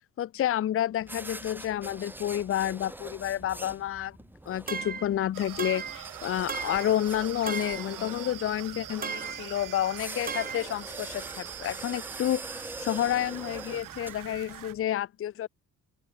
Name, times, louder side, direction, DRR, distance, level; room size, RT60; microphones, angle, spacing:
voice 1, 0.2-4.2 4.5-15.5, left 11 dB, 45° left, 0.8 m, -30 dB
sound 1, 1.0-14.8, right 1 dB, 5° right, 2.4 m, -44 dB
sound 2, 4.7-5.1 5.6-6.0 6.5-6.9 7.5-7.9 9.0-9.5 10.3-10.7, right 6 dB, 30° right, 2.1 m, -35 dB
sound 3, 5.3-14.7, right 14 dB, 85° right, 3.8 m, -43 dB
open air
cardioid pair, 160°, 31 cm